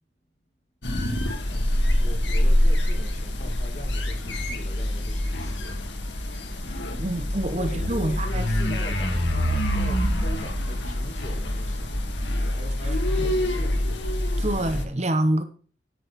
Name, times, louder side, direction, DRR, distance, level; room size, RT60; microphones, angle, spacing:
sound 1, 0.8-14.9, left 1 dB, 85° left, 2.0 m, -25 dB
voice 1, 1.5-5.8 7.5-12.1 12.5-13.9, equal, 40° left, 2.4 m, -41 dB
voice 2, 6.9-8.8 10.0-10.2 13.2-13.4 14.4-15.4, right 1 dB, 40° right, 1.1 m, -27 dB
10.0 x 6.4 x 6.3 m
head